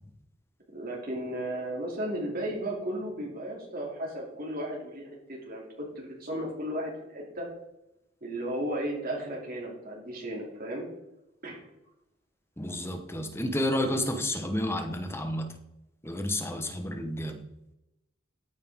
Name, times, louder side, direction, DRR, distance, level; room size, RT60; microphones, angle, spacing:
voice 1, 0.7-7.5 8.2-10.8 11.4-11.6, right 1 dB, 50° right, -2 dB, 2.7 m, -35 dB
voice 2, 12.6-15.6 16.0-17.4, left 1 dB, 15° left, 6 dB, 1.1 m, -31 dB
13.0 x 9.0 x 3.7 m, 0.92 s
head